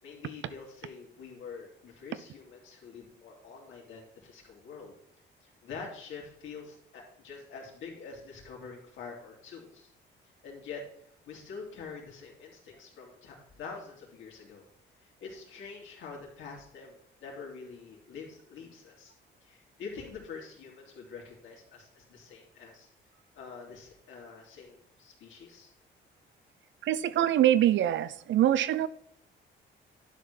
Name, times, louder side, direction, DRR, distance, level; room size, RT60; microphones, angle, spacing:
voice 1, 0.0-5.0 5.4-9.9 10.4-10.8 11.3-14.6 15.0-19.1 19.4-22.9 23.3-25.7, left 5 dB, 75° left, -1 dB, 3.1 m, -46 dB
voice 2, 26.9-28.9, right 12 dB, 70° right, 15 dB, 0.6 m, -24 dB
11.5 x 5.1 x 4.3 m, 0.69 s
cardioid pair, 90°, 20 cm